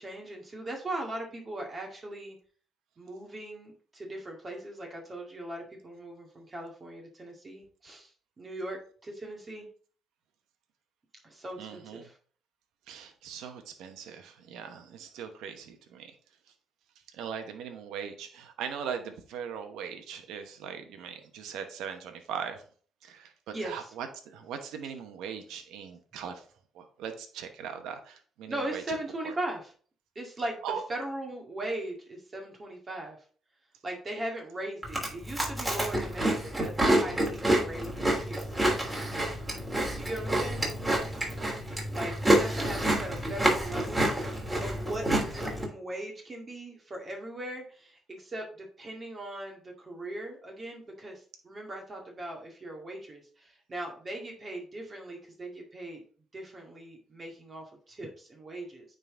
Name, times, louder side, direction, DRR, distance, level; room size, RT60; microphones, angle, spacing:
voice 1, 0.0-2.4 3.0-8.1 8.4-9.7 11.2-12.2 23.5-23.9 28.5-29.7 30.2-33.2 33.8-38.7 39.7-40.6 41.9-44.1 44.6-56.0 56.3-58.9, right 1 dB, 35° right, 1 dB, 1.9 m, -39 dB
voice 2, 11.6-12.1 12.9-16.1 17.1-22.6 23.0-26.4 26.7-28.8 29.2-29.3 30.6-30.8, right 7 dB, 90° right, 6 dB, 1.0 m, -40 dB
Chewing mastication, 34.8-45.6, right 1 dB, 15° right, 2.9 m, -28 dB
9.0 x 3.9 x 3.7 m, 0.44 s
cardioid pair, 90°, 0 cm